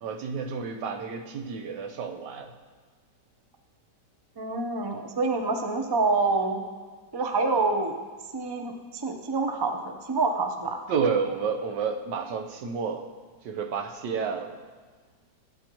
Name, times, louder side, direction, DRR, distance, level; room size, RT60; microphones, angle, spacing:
voice 1, 0.0-2.5 10.9-13.1 13.4-14.6, right 5 dB, 80° right, 5 dB, 1.5 m, -30 dB
voice 2, 4.4-6.6 7.1-8.0 8.3-9.8 10.1-10.8, right 3 dB, 40° right, 4 dB, 0.3 m, -26 dB
16.0 x 9.3 x 3.0 m, 1.5 s
omnidirectional pair, 1.9 m